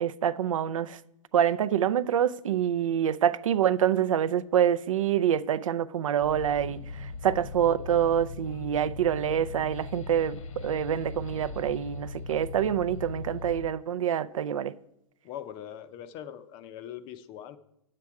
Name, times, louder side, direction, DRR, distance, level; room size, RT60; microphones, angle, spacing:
voice 1, 0.0-1.0 1.3-14.7, right 9 dB, 85° right, 0.5 m, -26 dB
sound 1, 6.2-13.7, left 4 dB, 80° left, 1.2 m, -39 dB
voice 2, 15.2-17.6, left 10 dB, 25° left, 0.5 m, -41 dB
9.5 x 7.6 x 4.7 m
hypercardioid pair, 150°, 17 cm